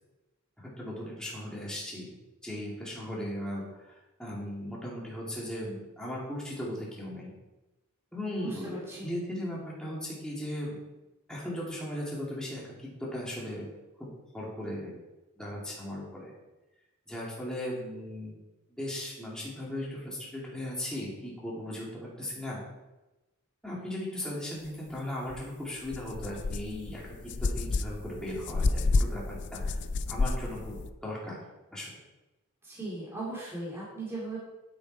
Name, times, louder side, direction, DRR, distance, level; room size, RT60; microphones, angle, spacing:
voice 1, 0.6-7.3 8.1-10.8 11.3-13.7 14.0-15.0 15.4-16.3 17.1-18.4 18.7-22.6 23.6-29.8 30.1-31.4 31.7-31.9, left 1 dB, 5° left, -5 dB, 2.6 m, -37 dB
voice 2, 8.4-9.1 32.6-34.4, right 2 dB, 10° right, -7 dB, 3.0 m, -38 dB
sound 1, 25.3-25.4 25.9-30.9, left 3 dB, 55° left, 0.5 m, -30 dB
9.8 x 8.6 x 4.7 m, 1.1 s
head